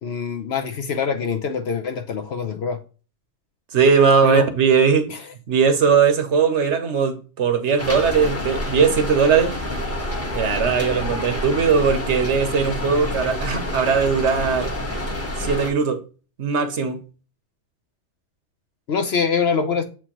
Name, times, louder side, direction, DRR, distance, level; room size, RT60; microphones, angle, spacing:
voice 1, 0.0-2.8 4.2-4.4 5.1-5.2 18.9-19.8, left 6 dB, 60° left, 0.8 m, -24 dB
voice 2, 3.7-5.1 5.5-9.5 10.3-14.7 15.4-16.0 16.4-17.0, right 6 dB, 60° right, 1.1 m, -19 dB
Rain, 7.8-15.7, left 1 dB, 10° left, 1.1 m, -28 dB
7.5 x 4.5 x 2.9 m
omnidirectional pair, 1.4 m